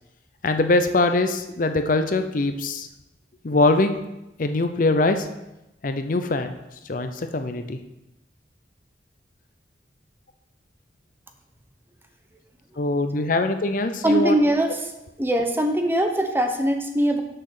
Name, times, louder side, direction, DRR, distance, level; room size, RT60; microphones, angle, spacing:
voice 1, 0.4-2.9 3.4-3.9 4.4-5.3 5.8-6.5 6.9-7.8 12.8-14.3, left 2 dB, 50° left, 8 dB, 0.6 m, -22 dB
voice 2, 14.0-14.9 15.2-17.2, right 1 dB, 15° right, 5 dB, 0.8 m, -21 dB
6.6 x 5.9 x 6.5 m, 0.93 s
head